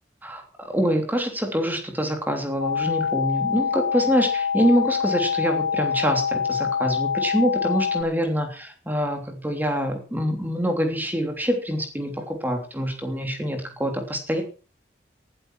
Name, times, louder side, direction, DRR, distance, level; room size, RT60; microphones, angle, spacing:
voice 1, 0.2-14.4, equal, 10° right, 4 dB, 3.0 m, -25 dB
sound 1, 2.6-8.0, left 6 dB, 55° left, 3.8 m, -25 dB
18.5 x 12.0 x 4.7 m, 0.37 s
head